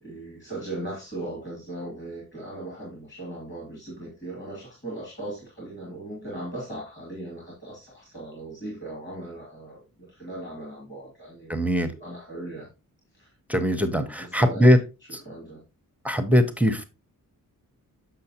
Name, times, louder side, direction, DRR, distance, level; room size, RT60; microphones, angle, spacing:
voice 1, 0.0-12.7 13.1-13.3 14.0-14.7 15.3-15.6, right 2 dB, 30° left, -2 dB, 2.3 m, -38 dB
voice 2, 11.5-11.9 13.5-14.8 15.1-15.2 16.0-16.8, equal, 5° right, 10 dB, 0.6 m, -21 dB
6.8 x 6.2 x 2.8 m, 0.27 s
wide cardioid pair, 145°, 34 cm